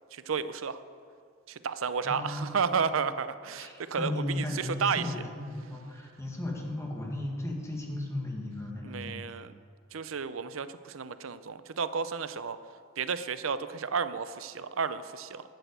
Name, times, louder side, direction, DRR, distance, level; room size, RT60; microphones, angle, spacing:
voice 1, 0.1-0.8 1.5-5.1 8.8-9.5 9.9-12.6 13.0-15.4, right 6 dB, 85° right, 13 dB, 0.6 m, -32 dB
voice 2, 2.0-2.6 3.6-9.2, left 1 dB, 15° left, -1 dB, 1.9 m, -35 dB
12.0 x 8.0 x 8.1 m, 2.2 s
head